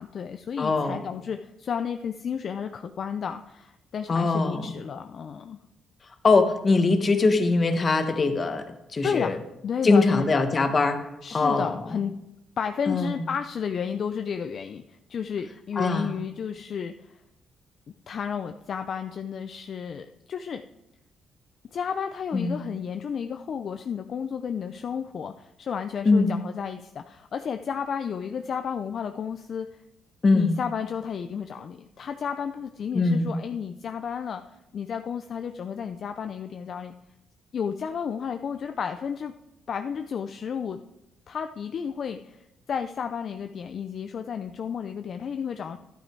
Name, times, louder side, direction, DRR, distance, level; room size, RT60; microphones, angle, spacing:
voice 1, 0.0-5.6 9.0-10.3 11.2-12.1 12.6-14.8 15.1-17.2 18.1-20.6 21.7-29.8 30.3-34.4 34.7-36.9 37.5-39.3 39.7-40.8 41.3-45.8, left 7 dB, 55° left, 7 dB, 0.5 m, -32 dB
voice 2, 0.6-1.0 4.1-4.7 6.2-8.6 8.9-9.4 9.8-11.8 12.9-13.1 15.8-16.1 22.3-22.6 26.0-26.3 30.2-30.5 32.9-33.3, left 3 dB, 35° left, 7 dB, 1.4 m, -22 dB
11.5 x 9.1 x 4.6 m, 0.88 s
cardioid pair, 90°, 0 cm